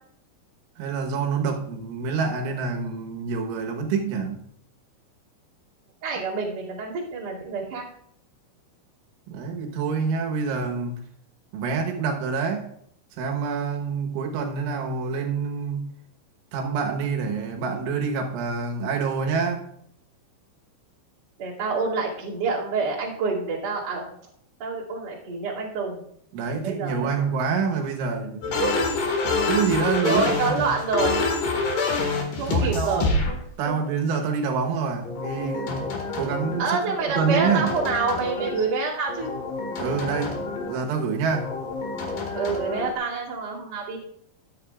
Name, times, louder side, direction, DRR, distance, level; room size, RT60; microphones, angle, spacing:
voice 1, 0.8-4.5 9.3-11.0 11.5-12.7 13.2-15.9 16.5-19.7 26.3-28.6 29.5-30.8 32.4-33.3 33.6-37.7 39.8-41.6, right 5 dB, 85° right, 2 dB, 3.6 m, -27 dB
voice 2, 6.0-7.9 21.4-24.0 24.6-26.0 26.6-27.3 28.6-28.9 29.2-29.5 30.0-31.2 32.4-33.8 36.6-39.3 42.3-44.0, right 4 dB, 40° right, -5 dB, 3.0 m, -27 dB
sound 1, 28.4-33.3 35.0-36.7 37.0-38.7 39.1-40.8 41.3-42.9, left 3 dB, 60° left, 2.8 m, -27 dB
21.5 x 7.7 x 2.4 m, 0.68 s
omnidirectional pair, 5.4 m